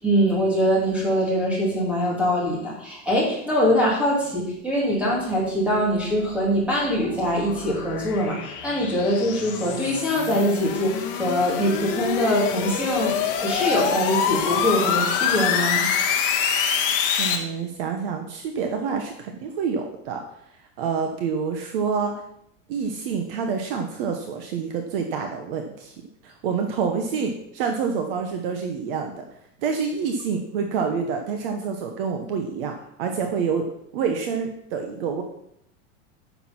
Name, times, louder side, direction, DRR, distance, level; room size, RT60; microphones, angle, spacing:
voice 1, 0.0-15.9, equal, 5° right, -5 dB, 2.7 m, -23 dB
sound 1, 6.0-17.4, left 7 dB, 45° left, 1.4 m, -26 dB
voice 2, 17.2-20.2 20.8-22.1 22.7-25.9 26.2-29.2 29.6-33.7 33.9-35.2, right 6 dB, 45° right, 4 dB, 1.2 m, -27 dB
9.7 x 6.7 x 5.9 m, 0.75 s
supercardioid pair, 180°, 39 cm